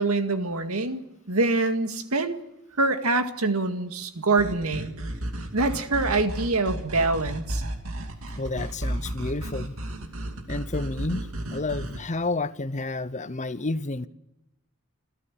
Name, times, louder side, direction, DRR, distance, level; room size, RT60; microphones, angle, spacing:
voice 1, 0.0-2.4 2.8-4.9 5.5-7.6, right 3 dB, 85° right, 2.0 m, -25 dB
sound 1, 4.4-12.0, right 1 dB, 65° right, 2.6 m, -33 dB
voice 2, 8.4-9.7 10.5-14.1, left 2 dB, 35° left, 0.8 m, -30 dB
27.5 x 14.0 x 8.8 m
head